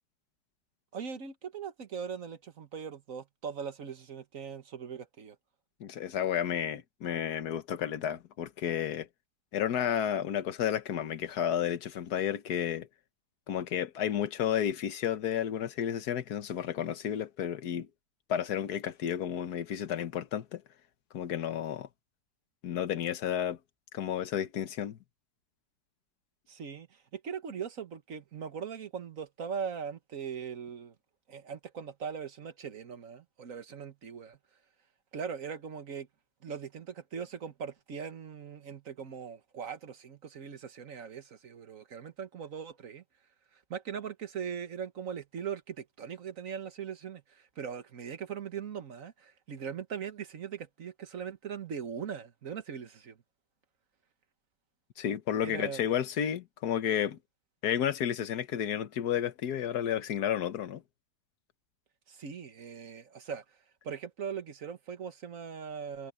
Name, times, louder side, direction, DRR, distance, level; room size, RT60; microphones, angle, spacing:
voice 1, 0.9-5.4 26.5-30.9 31.3-34.4 35.1-36.1 36.4-43.0 43.5-53.2 55.4-55.9 62.1-63.4 63.8-66.1, right 7 dB, 55° right, 1.7 m, -40 dB
voice 2, 5.8-9.1 9.5-12.9 13.5-17.9 18.3-20.6 21.1-21.9 22.6-23.6 23.9-25.0 55.0-57.2 57.6-60.8, left 9 dB, 70° left, 1.6 m, -32 dB
omnidirectional pair, 1.7 m